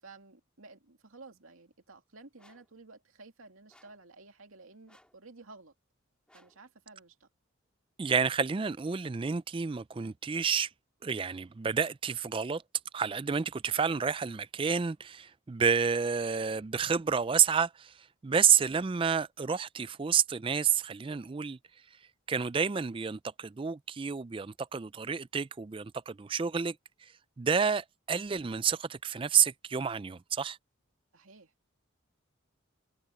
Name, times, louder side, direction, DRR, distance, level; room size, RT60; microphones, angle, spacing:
voice 1, 0.0-5.7 6.3-7.3 31.1-31.5, right 3 dB, 85° right, 2.5 m, -53 dB
sound 1, 2.4-2.7 3.7-4.1 4.9-5.2 6.3-6.6, left 1 dB, 5° left, 3.0 m, -63 dB
voice 2, 8.0-10.7 11.0-12.6 12.9-21.6 22.3-26.8 27.0-27.1 27.4-30.6, right 6 dB, 25° right, 0.3 m, -29 dB
head